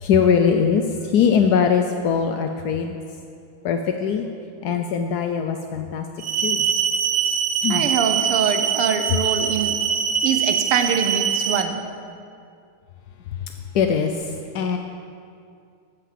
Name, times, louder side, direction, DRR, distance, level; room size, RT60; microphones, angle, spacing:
voice 1, 0.0-3.0 3.6-4.2 4.6-6.1 6.4-6.7 7.6-7.9 13.7-14.8, left 6 dB, 70° left, 5 dB, 0.9 m, -21 dB
sound 1, 6.2-11.6, right 8 dB, 65° right, 1.4 m, -23 dB
voice 2, 7.7-9.8 10.2-11.8, right 6 dB, 85° right, 7 dB, 1.9 m, -23 dB
13.5 x 8.9 x 7.5 m, 2.4 s
omnidirectional pair, 2.4 m